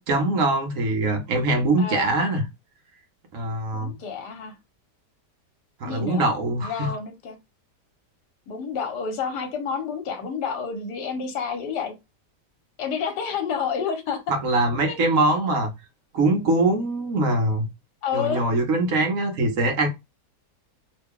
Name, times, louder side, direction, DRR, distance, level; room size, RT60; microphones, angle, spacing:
voice 1, 0.0-2.5 3.3-3.9 5.8-7.0 14.3-15.7 16.1-17.7 18.1-19.9, right 2 dB, 60° right, 1.1 m, -23 dB
voice 2, 1.8-2.1 3.7-4.6 5.8-6.3 6.6-7.4 8.5-11.9 12.8-14.2 14.9-15.0 18.0-18.4, left 6 dB, 75° left, 1.4 m, -29 dB
3.2 x 2.2 x 3.5 m
omnidirectional pair, 1.8 m